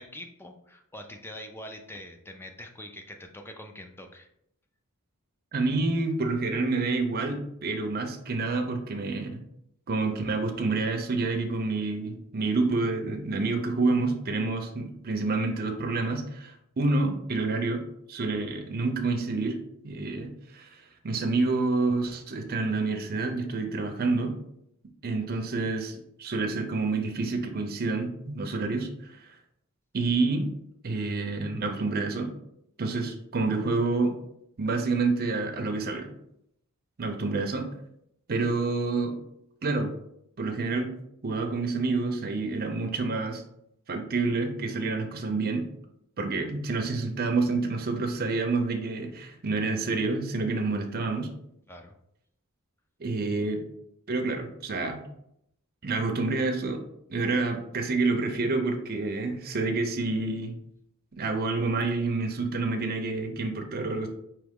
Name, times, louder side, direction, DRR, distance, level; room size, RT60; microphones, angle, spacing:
voice 1, 0.0-4.3 51.7-51.9, left 1 dB, 10° left, 5 dB, 0.4 m, -44 dB
voice 2, 5.5-9.4 9.9-17.8 18.1-19.6 19.8-20.7 21.0-24.4 25.0-29.3 29.9-30.5 30.8-32.3 32.8-34.2 34.6-36.1 37.0-37.7 38.3-39.2 39.6-39.9 40.4-40.9 41.2-43.4 43.9-45.7 46.2-51.3 53.0-53.6 54.1-55.0 55.8-56.8 57.1-60.6 61.1-64.1, right 3 dB, 45° right, 4 dB, 0.6 m, -28 dB
4.6 x 3.0 x 3.6 m, 0.76 s
head